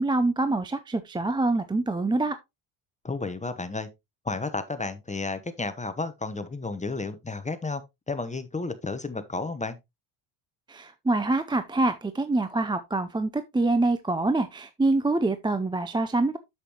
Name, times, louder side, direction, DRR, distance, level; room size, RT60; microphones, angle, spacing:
voice 1, 0.0-2.4 10.7-16.4, right 2 dB, 10° right, 0.5 m, -25 dB
voice 2, 3.0-3.9 4.2-7.8 8.1-9.8, left 3 dB, 15° left, 1.0 m, -32 dB
8.2 x 7.3 x 2.9 m
cardioid pair, 95°, 49 cm